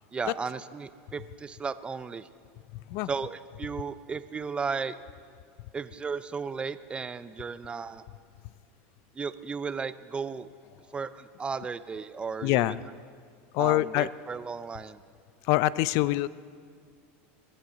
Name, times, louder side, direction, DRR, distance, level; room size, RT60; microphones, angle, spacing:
voice 1, 0.1-2.3 3.1-5.0 5.7-8.0 9.1-10.5 10.9-12.8 13.6-15.0, right 5 dB, 15° right, 13 dB, 0.5 m, -35 dB
voice 2, 12.4-12.8 13.5-14.1 15.5-16.3, left 17 dB, 55° left, 18 dB, 0.4 m, -24 dB
23.0 x 14.0 x 3.9 m, 2.1 s
supercardioid pair, 135°, 7 cm